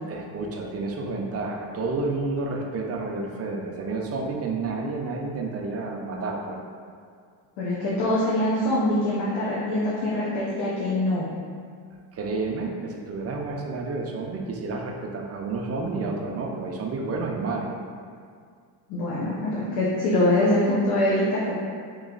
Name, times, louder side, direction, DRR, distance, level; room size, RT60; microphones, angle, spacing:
voice 1, 0.1-6.6 12.1-17.7, right 3 dB, 35° right, 0 dB, 0.5 m, -30 dB
voice 2, 7.6-11.3 18.9-21.5, left 1 dB, 75° left, -7 dB, 0.9 m, -24 dB
3.0 x 3.0 x 3.8 m, 2.1 s
cardioid pair, 115°, 46 cm